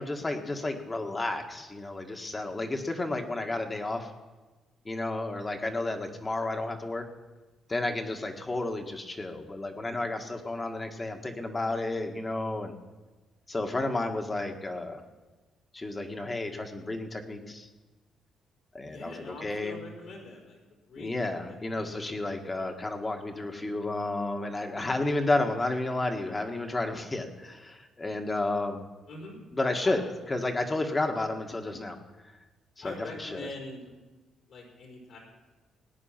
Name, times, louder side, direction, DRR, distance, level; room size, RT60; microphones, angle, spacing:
voice 1, 0.0-4.1 4.9-7.1 7.7-12.7 13.5-15.0 15.7-17.7 18.7-19.8 20.9-28.9 29.5-32.0 32.8-33.5, left 2 dB, 25° left, 4 dB, 1.7 m, -32 dB
voice 2, 18.9-20.6 20.9-22.0 29.1-29.4 29.8-30.0 32.8-33.8 34.5-35.2, left 3 dB, 70° left, -1 dB, 4.4 m, -43 dB
18.5 x 9.6 x 5.9 m, 1.2 s
cardioid pair, 90°, 0 cm